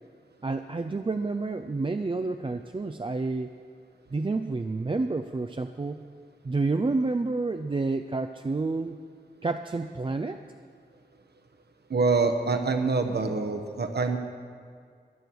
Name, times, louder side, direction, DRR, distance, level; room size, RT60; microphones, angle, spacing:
voice 1, 0.4-3.5 4.1-6.0 6.4-9.0 9.4-10.4, right 3 dB, 30° right, 7 dB, 0.4 m, -29 dB
voice 2, 11.9-14.2, right 4 dB, 65° right, 6 dB, 1.2 m, -25 dB
15.0 x 10.0 x 6.2 m, 2.1 s
wide cardioid pair, 85°, 18 cm